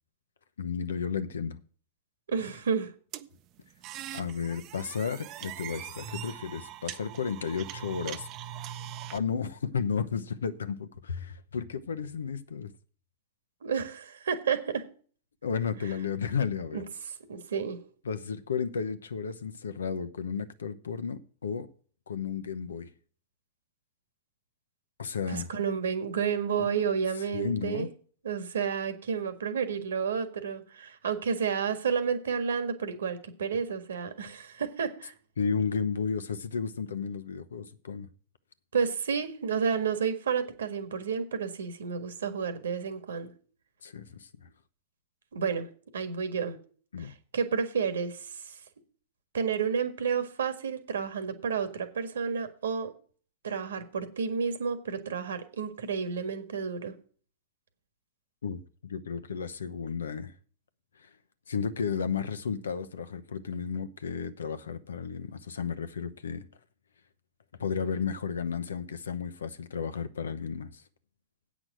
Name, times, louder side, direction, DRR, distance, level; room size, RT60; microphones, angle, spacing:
voice 1, 0.6-1.6 4.1-8.3 9.1-12.7 15.4-16.8 18.0-21.7 22.1-22.9 25.0-25.5 27.3-27.9 35.4-38.1 43.8-44.5 46.9-47.1 58.4-60.3 61.0-61.1 61.5-66.5 67.6-70.8, left 6 dB, 85° left, 0.9 m, -33 dB
voice 2, 2.3-2.9 13.6-14.8 16.7-17.8 25.3-27.9 28.2-35.1 38.7-43.3 45.3-46.6 47.0-48.6 49.3-52.9 53.4-56.9, right 6 dB, 80° right, 1.6 m, -31 dB
sound 1, 3.1-9.2, right 11 dB, 40° right, 0.7 m, -41 dB
8.5 x 6.1 x 7.7 m
hypercardioid pair, 110°, 0 cm